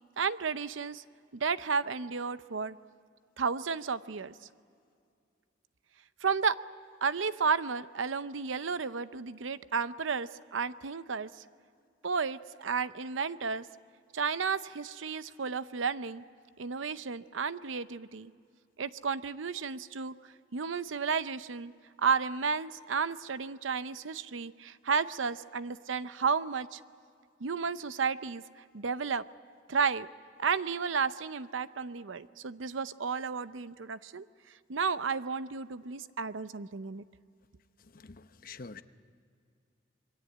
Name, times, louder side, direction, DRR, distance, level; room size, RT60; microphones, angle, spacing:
voice 1, 0.2-1.0 1.3-2.8 3.4-4.3 6.2-6.6 7.0-11.3 12.0-13.7 14.1-16.2 16.6-18.3 18.8-20.2 20.5-21.7 22.0-26.8 27.4-28.4 28.7-29.2 29.7-30.1 30.4-34.3 34.7-37.0, right 5 dB, 90° right, 14 dB, 0.7 m, -32 dB
voice 2, 37.8-38.8, left 4 dB, 50° left, 11 dB, 0.8 m, -47 dB
27.0 x 22.5 x 8.5 m, 2.3 s
head